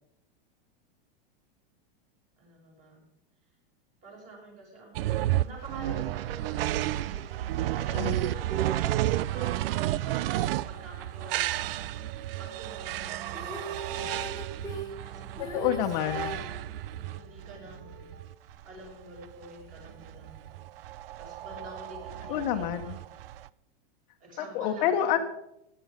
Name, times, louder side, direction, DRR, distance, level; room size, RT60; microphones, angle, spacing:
voice 1, 2.4-3.1 4.0-7.3 7.8-11.9 12.4-14.4 15.1-15.8 16.9-18.1 18.6-20.6 21.2-23.0 24.2-25.2, right 1 dB, 25° right, -2 dB, 6.2 m, -47 dB
sound 1, 4.9-23.5, right 14 dB, 75° right, 0.6 m, -32 dB
sound 2, 11.1-18.3, right 9 dB, 50° right, 1.8 m, -48 dB
Female singing, 13.3-16.6 18.5-18.6, right 1 dB, 15° left, 1.6 m, -38 dB
voice 2, 15.4-16.4 22.3-23.0 24.4-25.2, left 10 dB, 50° left, 6 dB, 1.2 m, -28 dB
16.5 x 10.0 x 5.2 m, 0.85 s
supercardioid pair, 155°, 29 cm